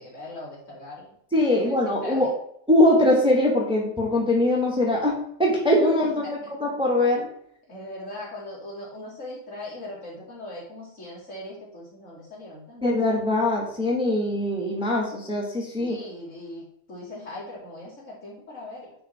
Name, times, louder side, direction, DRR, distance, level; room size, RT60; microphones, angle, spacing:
voice 1, 0.0-1.1 1.5-2.3 6.0-6.5 7.7-12.9 15.8-18.9, left 1 dB, 60° left, -6 dB, 3.2 m, -40 dB
voice 2, 1.3-2.3 2.7-7.3 12.8-16.0, left 1 dB, 5° right, -1 dB, 1.1 m, -22 dB
9.9 x 3.6 x 4.5 m, 0.69 s
omnidirectional pair, 1.5 m